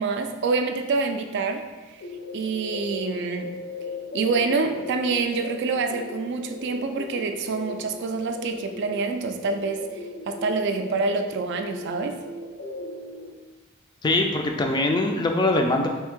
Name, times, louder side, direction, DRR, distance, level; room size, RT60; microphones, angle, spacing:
voice 1, 0.0-1.7 2.3-3.6 4.1-12.2, right 4 dB, 55° right, 7 dB, 0.3 m, -26 dB
sound 1, 2.0-13.3, left 2 dB, 65° left, 0.7 m, -38 dB
voice 2, 14.0-15.9, left 2 dB, 20° left, 3 dB, 0.3 m, -22 dB
3.4 x 2.6 x 3.6 m, 1.2 s
head